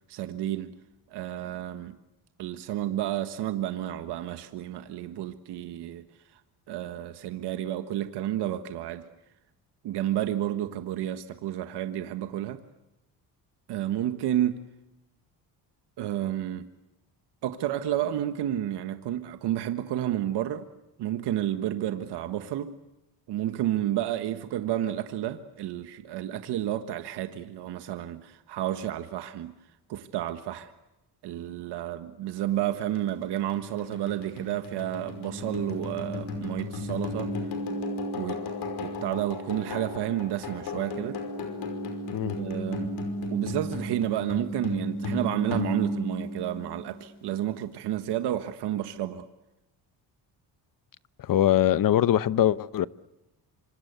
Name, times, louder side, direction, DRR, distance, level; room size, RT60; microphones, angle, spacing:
voice 1, 0.1-0.8 1.1-1.9 2.4-6.0 6.7-9.0 9.8-12.6 13.7-14.6 16.0-16.7 17.4-20.7 21.0-22.8 23.3-29.5 29.9-30.7 31.2-37.3 38.1-38.4 38.8-41.2 42.2-43.0 43.3-49.3, right 12 dB, 85° right, 1.5 m, -31 dB
sound 1, 33.0-47.1, left 1 dB, 75° left, 5.4 m, -34 dB
voice 2, 51.2-52.9, left 11 dB, 55° left, 0.9 m, -22 dB
27.0 x 26.0 x 8.2 m
cardioid pair, 105°, 40 cm